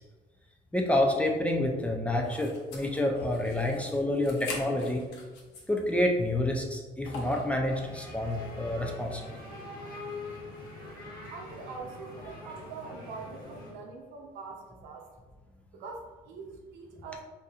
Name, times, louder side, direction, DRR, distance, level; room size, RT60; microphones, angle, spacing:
voice 1, 0.7-5.0 5.7-9.4, left 1 dB, 10° left, 1 dB, 0.4 m, -28 dB
sound 1, 2.2-5.9 6.3-6.4 7.0-7.6, left 2 dB, 80° left, 0.7 m, -43 dB
sound 2, 7.7-13.7, left 2 dB, 60° left, 1.3 m, -44 dB
voice 2, 11.3-15.1 15.7-17.2, right 4 dB, 85° right, 1 dB, 0.7 m, -43 dB
4.0 x 2.7 x 2.4 m, 1.3 s
cardioid pair, 110°, 17 cm